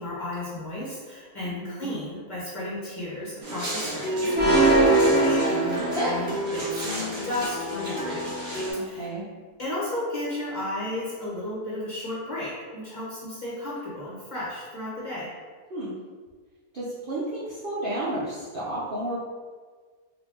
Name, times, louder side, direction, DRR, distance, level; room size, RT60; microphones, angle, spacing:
voice 1, 0.0-6.7 6.9-9.1 9.6-15.3, left 1 dB, 40° left, -8 dB, 0.8 m, -34 dB
voice 2, 1.4-1.9 8.9-9.3 15.7-15.9 16.7-19.2, right 1 dB, 65° right, -8 dB, 0.5 m, -32 dB
sound 1, 3.4-8.7, equal, 45° right, 1.1 m, -30 dB
sound 2, 4.4-6.4, right 2 dB, 15° right, 0.4 m, -20 dB
2.9 x 2.5 x 3.3 m, 1.5 s
omnidirectional pair, 1.6 m